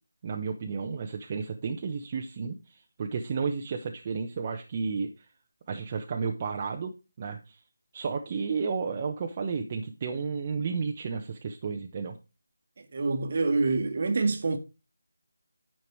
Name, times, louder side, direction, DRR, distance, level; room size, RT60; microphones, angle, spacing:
voice 1, 0.2-5.3 5.7-7.6 7.9-12.1, right 5 dB, 30° right, 0.9 m, -32 dB
voice 2, 12.8-14.6, right 3 dB, 45° right, 1.4 m, -26 dB
9.8 x 5.8 x 4.7 m
figure-of-eight pair, 160°, 0 cm